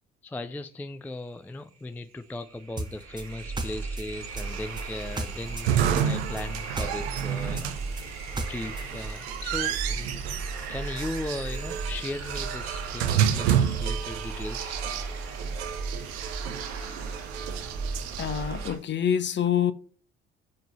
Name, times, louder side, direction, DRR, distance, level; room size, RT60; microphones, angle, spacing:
voice 1, 0.2-8.2 8.5-10.2 10.7-14.8, left 2 dB, 5° left, 0.3 m, -37 dB
sound 1, 1.8-1.9 2.1-18.8, right 4 dB, 55° right, 1.6 m, -36 dB
sound 2, 2.8-5.7 6.0-8.9, right 2 dB, 15° right, 0.8 m, -35 dB
sound 3, 4.4-18.7, right 9 dB, 75° right, 0.7 m, -31 dB
voice 2, 18.2-19.7, left 9 dB, 35° left, 0.7 m, -26 dB
5.3 x 3.8 x 5.5 m
hypercardioid pair, 55°, 32 cm